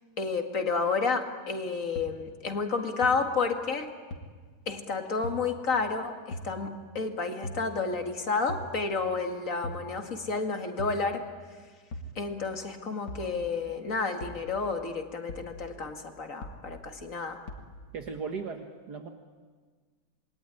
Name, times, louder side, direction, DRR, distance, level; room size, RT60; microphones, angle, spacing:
voice 1, 0.2-3.9 4.7-11.2 12.2-17.4, left 4 dB, 45° left, 4 dB, 2.5 m, -31 dB
sound 1, 2.0-2.1 3.0-3.1 4.1-4.2 5.2-5.4 6.3-6.5 7.4-7.6 8.5-8.7 9.6-9.9 10.8-11.0 11.9-12.1 13.1-13.3 14.2-14.4 15.3-15.5 16.4-16.6 17.5-17.7, left 1 dB, 75° left, 2.7 m, -38 dB
voice 2, 17.9-19.1, right 5 dB, 65° right, 5 dB, 1.9 m, -37 dB
27.0 x 22.0 x 9.9 m, 1.5 s
omnidirectional pair, 1.9 m